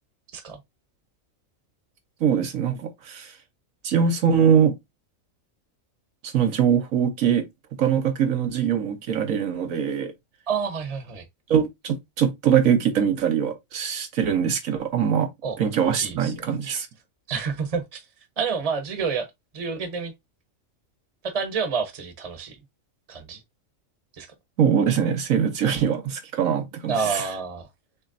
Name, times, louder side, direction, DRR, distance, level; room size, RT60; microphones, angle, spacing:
voice 1, 2.2-3.3 3.8-4.8 6.2-7.5 7.8-10.1 11.5-15.3 15.6-16.9 24.6-27.2, right 8 dB, 80° right, 1.3 m, -22 dB
voice 2, 10.5-11.2 15.4-15.6 16.0-16.5 17.3-18.1 18.4-19.3 19.5-20.1 21.2-22.6 23.1-23.4 24.1-24.3 26.9-27.7, right 5 dB, 30° right, 1.0 m, -28 dB
6.4 x 3.1 x 2.6 m
omnidirectional pair, 1.4 m